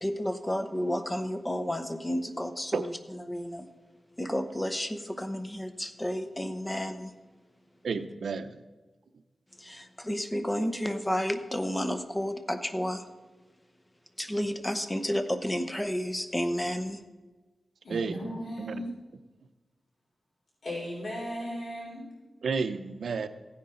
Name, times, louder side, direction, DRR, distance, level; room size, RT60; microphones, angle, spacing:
voice 1, 0.0-3.7 4.2-7.1 9.6-13.0 14.2-17.0, equal, 10° left, 9 dB, 0.8 m, -31 dB
voice 2, 7.8-8.6 17.9-18.2 18.6-18.8 22.4-23.3, right 5 dB, 80° right, 10 dB, 0.7 m, -31 dB
voice 3, 17.8-18.9 20.6-22.0, equal, 65° left, -4 dB, 3.9 m, -36 dB
15.5 x 9.8 x 3.9 m, 1.3 s
wide cardioid pair, 130°, 0 cm